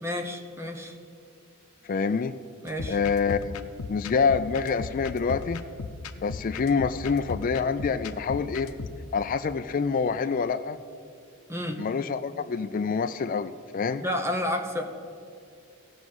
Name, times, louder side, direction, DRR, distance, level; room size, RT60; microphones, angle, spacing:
voice 1, 0.0-1.0 2.6-3.0 11.5-11.8 14.0-14.9, left 1 dB, 10° right, 5 dB, 0.9 m, -30 dB
voice 2, 1.9-2.3 2.9-5.6 6.2-8.7 9.1-10.8 11.8-14.0, left 5 dB, 40° left, 8 dB, 0.4 m, -26 dB
sound 1, 2.7-9.0, left 3 dB, 90° left, 0.7 m, -37 dB
16.5 x 6.0 x 7.9 m, 2.5 s
head